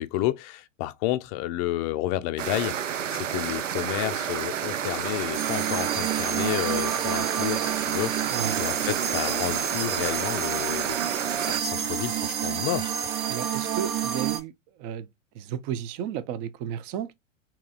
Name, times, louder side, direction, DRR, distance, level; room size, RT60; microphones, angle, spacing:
voice 1, 0.0-11.0 11.5-13.4, left 15 dB, 30° left, 0.4 m, -31 dB
sound 1, 2.4-11.6, right 9 dB, 80° right, 0.6 m, -30 dB
sound 2, 4.9-14.4, left 4 dB, 10° left, 0.9 m, -47 dB
sound 3, 5.3-14.4, right 9 dB, 50° right, 0.8 m, -29 dB
voice 2, 8.3-8.6 13.3-14.5 14.8-15.1 15.3-17.1, right 9 dB, 30° right, 0.5 m, -33 dB
3.8 x 2.8 x 2.3 m
figure-of-eight pair, 100°, 38 cm